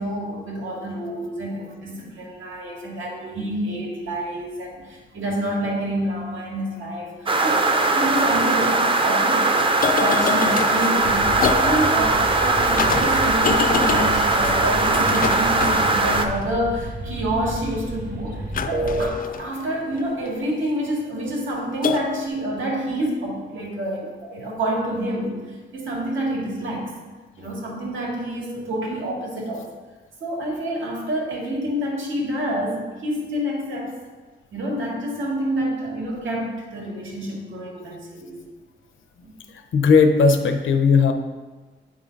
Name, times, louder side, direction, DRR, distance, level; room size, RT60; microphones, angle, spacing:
voice 1, 0.0-7.7 7.9-9.6 9.9-26.9 27.4-29.7 30.2-34.0 34.5-38.4 39.2-39.3, right 1 dB, 90° right, -2 dB, 2.1 m, -28 dB
sound 1, 7.3-16.3, right 3 dB, 25° right, 0.5 m, -20 dB
sound 2, 7.6-7.7 8.4-8.7 9.6-16.5 18.5-20.5 21.8-22.3, left 7 dB, 45° left, 0.4 m, -28 dB
sound 3, 11.0-19.1, right 1 dB, 45° right, 0.9 m, -31 dB
voice 2, 39.7-41.1, left 5 dB, 90° left, 6 dB, 0.7 m, -16 dB
8.8 x 3.8 x 5.2 m, 1.3 s
wide cardioid pair, 170°, 20 cm